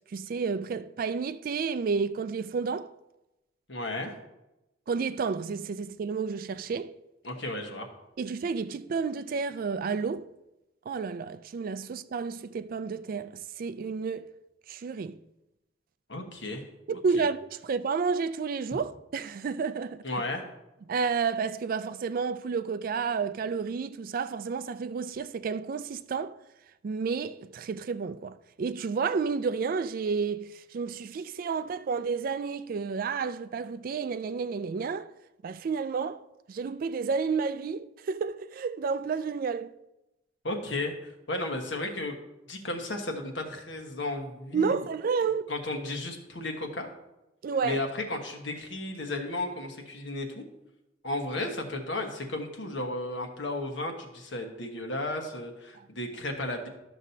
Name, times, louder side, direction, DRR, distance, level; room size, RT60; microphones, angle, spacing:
voice 1, 0.1-2.9 4.9-6.9 8.2-10.3 10.9-14.3 14.7-15.2 16.9-20.0 20.9-26.4 26.8-35.1 35.4-36.2 36.5-39.7 44.5-45.5 47.4-47.8 55.7-55.9, right 5 dB, 50° right, 0.3 m, -31 dB
voice 2, 3.7-4.1 7.2-7.9 16.1-16.6 17.2-17.3 20.0-20.4 40.4-42.1 42.5-44.8 45.5-46.9 47.6-50.4 51.0-56.7, left 2 dB, 80° left, 1.3 m, -34 dB
12.5 x 6.2 x 2.7 m
head